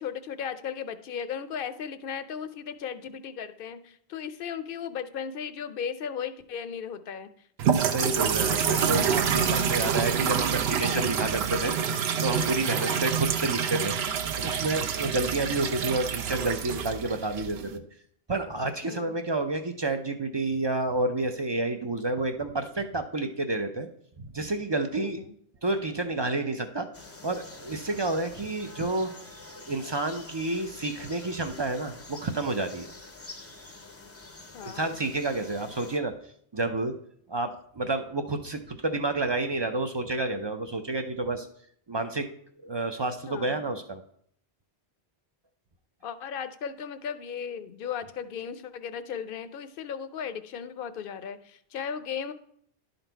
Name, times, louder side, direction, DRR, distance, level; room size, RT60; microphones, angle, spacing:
voice 1, 0.0-7.5 10.8-11.1 12.7-13.1 18.8-19.1 24.9-25.3 34.5-35.0 43.3-43.7 46.0-52.3, left 7 dB, 60° left, 12 dB, 0.7 m, -36 dB
sound 1, 7.6-17.7, right 7 dB, 70° right, 0.8 m, -27 dB
voice 2, 7.9-11.8 12.2-17.8 18.3-23.9 24.2-25.2 25.6-26.9 27.2-29.1 29.5-32.9 34.6-36.2 36.5-36.9 37.3-41.5 41.9-42.3 42.6-44.0, right 2 dB, 40° right, 7 dB, 0.3 m, -30 dB
sound 2, 26.9-36.0, left 3 dB, 20° left, 0.5 m, -47 dB
11.0 x 4.0 x 4.5 m, 0.66 s
omnidirectional pair, 1.1 m